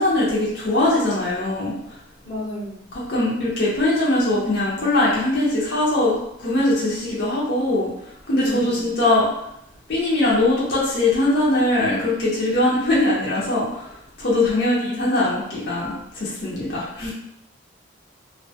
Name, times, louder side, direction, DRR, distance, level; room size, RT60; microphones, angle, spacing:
voice 1, 0.0-2.0 3.1-7.9 8.3-9.4 9.9-13.9 14.2-17.1, left 1 dB, 60° left, -7 dB, 0.6 m, -21 dB
voice 2, 2.2-2.9 8.4-8.9 14.3-15.0, left 1 dB, 20° left, -6 dB, 0.8 m, -31 dB
2.5 x 2.2 x 2.7 m, 0.79 s
head